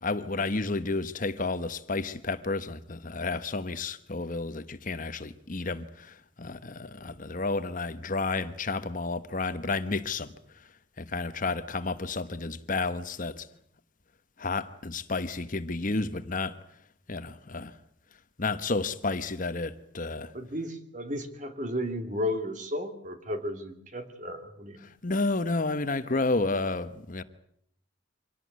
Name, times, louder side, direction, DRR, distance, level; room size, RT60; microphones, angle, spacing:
voice 1, 0.0-10.3 11.0-13.5 14.4-16.5 17.1-17.7 18.4-20.3 25.0-27.2, left 3 dB, 45° left, 1.1 m, -31 dB
voice 2, 20.3-24.9, left 1 dB, 40° right, 2.7 m, -34 dB
25.5 x 17.5 x 9.5 m
head